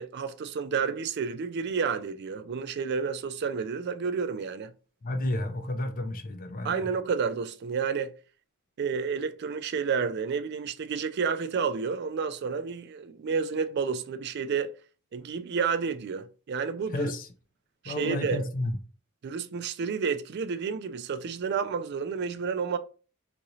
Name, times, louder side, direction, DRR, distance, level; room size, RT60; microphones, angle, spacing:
voice 1, 0.0-4.7 6.6-8.1 8.8-14.7 15.1-17.1 17.8-18.5 19.2-22.8, right 5 dB, 50° right, 0.3 m, -30 dB
voice 2, 5.0-6.9 16.9-17.3 17.8-18.8, left 1 dB, 40° left, 0.5 m, -31 dB
3.7 x 3.0 x 2.7 m
head